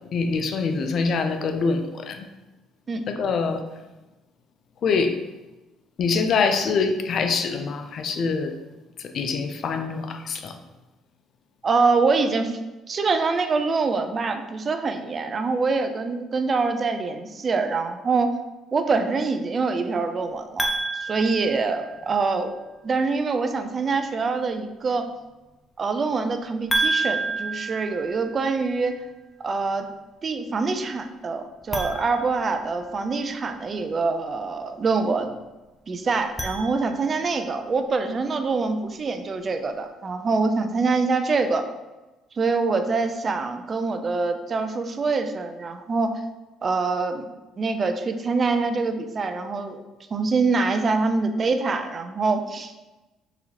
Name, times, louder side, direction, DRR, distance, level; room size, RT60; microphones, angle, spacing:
voice 1, 0.0-2.3 3.1-3.8 4.8-5.2 6.0-8.6 9.0-10.6, left 4 dB, 60° left, 7 dB, 0.4 m, -25 dB
voice 2, 11.6-12.6 12.9-18.3 18.7-20.7 21.0-22.5 22.8-25.1 25.8-29.0 29.4-29.9 30.2-35.3 35.9-41.6 42.3-46.1 46.6-47.3 47.6-49.8 50.1-52.7, right 4 dB, 40° right, 8 dB, 0.4 m, -25 dB
sound 1, 20.6-22.3 26.7-28.7 31.6-33.2 36.1-37.3, right 2 dB, 10° left, 0.6 m, -30 dB
3.9 x 2.7 x 2.8 m, 1.1 s
supercardioid pair, 70°, 0 cm